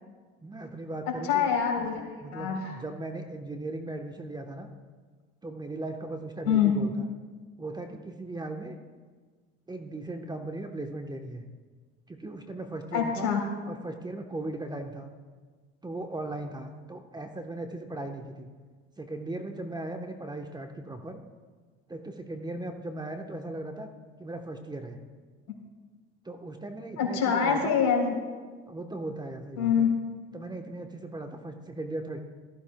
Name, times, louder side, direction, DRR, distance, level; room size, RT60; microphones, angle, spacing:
voice 1, 0.4-1.5 2.2-4.7 5.4-7.1 7.6-8.8 9.7-11.4 12.1-13.3 13.7-15.1 15.8-18.5 19.0-21.2 21.9-23.9 24.2-25.0 26.2-27.8 28.7-29.9 30.3-32.2, right 2 dB, 15° right, 4 dB, 1.0 m, -38 dB
voice 2, 1.1-2.7 6.5-6.7 12.9-13.4 27.0-28.2 29.6-29.9, left 7 dB, 60° left, 1 dB, 3.7 m, -25 dB
18.0 x 14.0 x 2.3 m, 1.4 s
hypercardioid pair, 75°, 32 cm